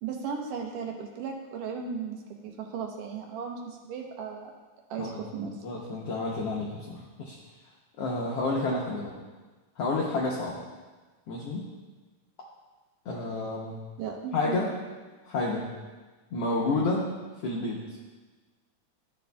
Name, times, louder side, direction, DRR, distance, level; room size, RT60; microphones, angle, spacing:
voice 1, 0.0-4.5 4.9-5.5 14.0-14.6, right 6 dB, 80° right, 1 dB, 2.4 m, -36 dB
voice 2, 5.0-7.4 8.0-9.2 9.8-10.6 11.3-11.7 13.0-13.8 14.3-14.7 15.2-15.7 16.3-17.1 17.4-17.9, left 2 dB, 85° left, -3 dB, 1.4 m, -30 dB
12.0 x 6.7 x 2.3 m, 1.3 s
omnidirectional pair, 3.8 m